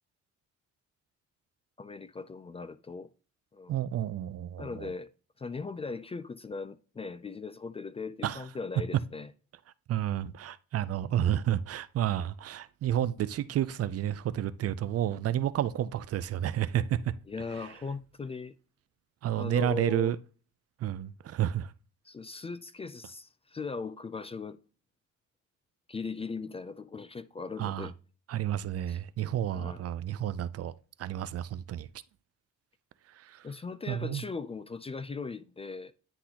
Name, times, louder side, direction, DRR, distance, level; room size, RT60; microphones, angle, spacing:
voice 1, 1.8-3.1 3.5-3.8 4.6-5.1 5.4-9.3 17.3-18.6 19.3-20.1 22.0-24.6 25.9-27.9 28.9-29.0 29.5-29.9 33.4-35.9, left 4 dB, 20° left, 0.3 m, -39 dB
voice 2, 3.7-4.9 8.2-8.4 9.9-17.1 19.2-20.2 20.8-21.7 27.6-27.9 28.3-30.7 31.0-31.9 33.2-33.5 33.9-34.2, right 11 dB, 55° right, 0.4 m, -30 dB
10.0 x 3.8 x 2.9 m
cardioid pair, 90°, 30 cm